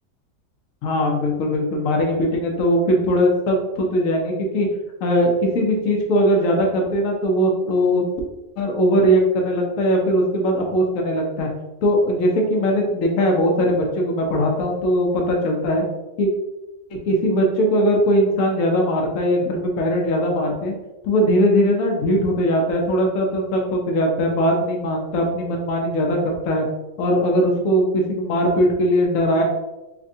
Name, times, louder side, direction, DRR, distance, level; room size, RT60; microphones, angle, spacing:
voice 1, 0.8-4.7 5.0-8.0 8.6-11.5 11.8-15.8 16.2-16.3 16.9-20.7 21.0-26.7 27.0-29.4, equal, 65° left, 0 dB, 0.9 m, -20 dB
5.0 x 2.2 x 2.6 m, 1.0 s
omnidirectional pair, 1.9 m